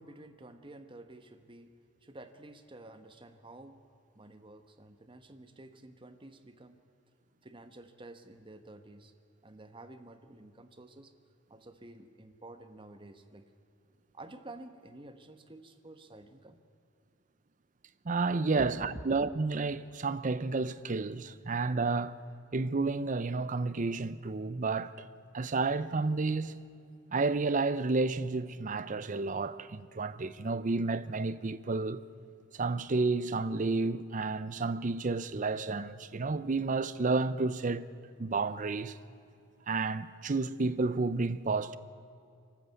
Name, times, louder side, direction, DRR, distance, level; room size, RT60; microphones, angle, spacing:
voice 1, 0.0-3.8 4.1-6.8 7.4-9.1 9.4-11.1 11.5-13.4 14.1-16.6 18.6-19.0, right 1 dB, 25° right, 1.1 m, -50 dB
voice 2, 18.0-22.2 22.5-25.1 25.3-26.6 27.1-32.0 32.5-37.8 38.2-39.0 39.7-41.8, right 3 dB, 40° right, 0.6 m, -31 dB
24.0 x 13.5 x 8.2 m
head